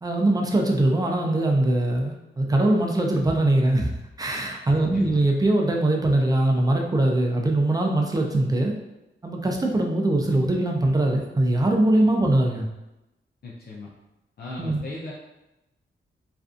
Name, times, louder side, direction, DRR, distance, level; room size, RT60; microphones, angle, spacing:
voice 1, 0.0-3.9 4.2-8.7 9.2-12.7 14.6-14.8, right 1 dB, 20° right, 1 dB, 0.4 m, -22 dB
voice 2, 13.4-13.9 14.4-15.1, left 2 dB, 55° left, -5 dB, 0.4 m, -36 dB
2.5 x 2.3 x 2.4 m, 0.95 s
wide cardioid pair, 105°, 20 cm